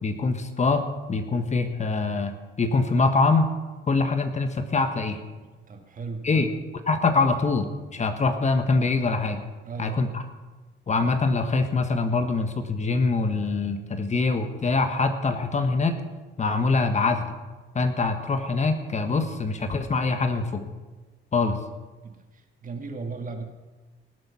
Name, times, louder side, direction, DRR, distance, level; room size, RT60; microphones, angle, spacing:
voice 1, 0.0-3.5 3.9-5.2 6.2-6.5 6.9-9.4 9.8-10.2 10.9-16.0 16.4-17.3 17.7-20.7 21.3-21.6, left 3 dB, 35° left, 7 dB, 1.4 m, -24 dB
voice 2, 5.7-6.5 9.6-10.1 22.0-23.4, right 4 dB, 40° right, 5 dB, 1.9 m, -37 dB
19.0 x 7.9 x 5.9 m, 1.2 s
cardioid pair, 90°, 20 cm